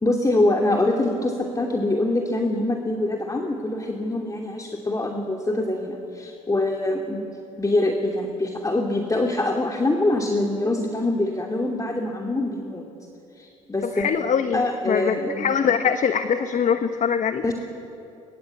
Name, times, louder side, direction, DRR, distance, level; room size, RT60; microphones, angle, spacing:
voice 1, 0.0-7.2 7.6-12.8 13.4-14.1 14.5-15.7 17.4-17.5, left 2 dB, 20° left, 2 dB, 2.8 m, -24 dB
voice 2, 13.9-17.4, left 7 dB, 50° left, 9 dB, 1.3 m, -23 dB
22.5 x 22.0 x 8.5 m, 2.9 s
hypercardioid pair, 55°, 17 cm